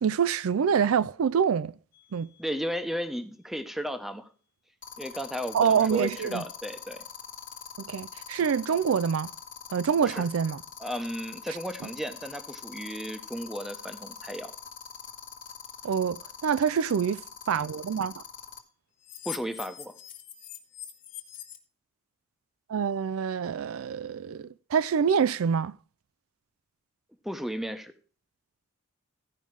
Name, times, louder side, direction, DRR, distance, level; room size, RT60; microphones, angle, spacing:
voice 1, 0.0-1.7 2.1-2.3 5.5-6.4 7.8-9.3 9.7-10.6 15.8-17.2 17.5-18.2 22.7-25.8, right 7 dB, 80° right, 0.4 m, -26 dB
sound 1, 1.9-2.2 4.8-18.6 19.0-21.6, left 8 dB, 40° left, 1.5 m, -42 dB
voice 2, 2.4-4.3 5.0-7.0 10.0-10.2 10.8-14.5 19.2-19.9 27.2-27.9, equal, ahead, 0.9 m, -34 dB
14.5 x 5.5 x 4.7 m
head